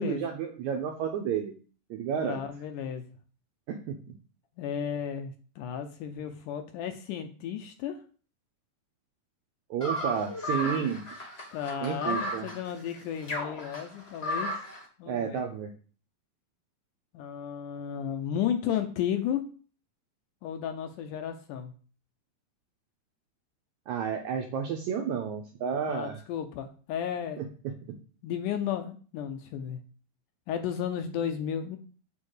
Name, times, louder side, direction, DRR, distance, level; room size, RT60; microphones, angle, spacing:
voice 1, 0.0-1.5 1.9-2.4 3.7-4.0 9.7-11.0 11.8-12.5 15.1-15.7 23.9-26.2 27.4-27.7, right 7 dB, 75° right, 2 dB, 1.7 m, -31 dB
voice 2, 2.2-3.1 4.6-8.0 11.5-14.5 15.0-15.4 17.1-19.5 20.4-21.7 25.9-27.5 28.2-29.8 30.5-31.8, left 9 dB, 75° left, 7 dB, 2.0 m, -33 dB
sound 1, 9.8-14.8, equal, 40° left, 0.9 m, -34 dB
7.1 x 3.7 x 6.4 m, 0.40 s
omnidirectional pair, 4.1 m